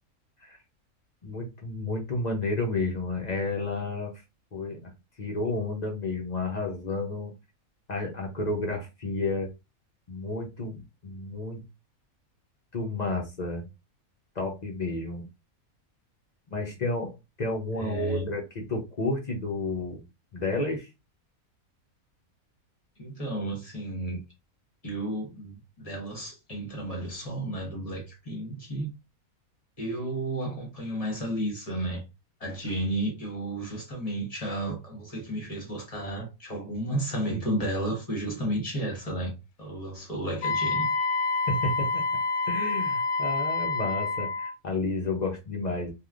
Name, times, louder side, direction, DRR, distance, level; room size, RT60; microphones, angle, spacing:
voice 1, 1.2-4.1 4.5-4.9 5.2-7.3 7.9-9.5 10.1-11.6 12.7-13.7 14.3-15.3 16.5-17.1 17.4-20.0 20.3-20.9 41.5-42.0 42.5-45.9, left 2 dB, 45° left, 0.6 m, -31 dB
voice 2, 17.8-18.3 23.0-24.2 24.8-28.9 29.8-32.0 32.4-40.9, right 1 dB, 30° left, 1.0 m, -32 dB
Wind instrument woodwind instrument, 40.4-44.5, left 3 dB, 90° left, 1.1 m, -28 dB
3.2 x 2.4 x 2.4 m
omnidirectional pair, 1.5 m